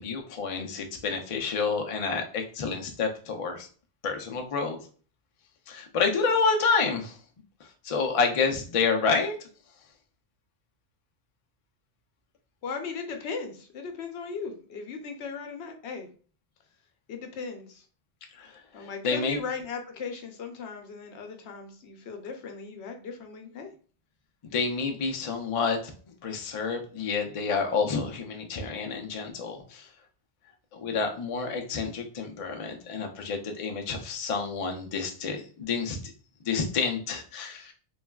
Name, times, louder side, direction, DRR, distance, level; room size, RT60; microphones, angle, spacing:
voice 1, 0.0-3.7 4.0-4.8 5.7-7.2 7.8-9.4 18.4-18.5 18.8-19.4 24.5-25.9 26.2-29.9 30.7-36.0 36.4-37.7, left 5 dB, 55° left, 3 dB, 0.4 m, -29 dB
voice 2, 12.6-16.1 17.1-17.8 18.7-23.7, left 5 dB, 80° left, 5 dB, 0.9 m, -37 dB
3.2 x 2.2 x 2.2 m, 0.41 s
omnidirectional pair, 1.1 m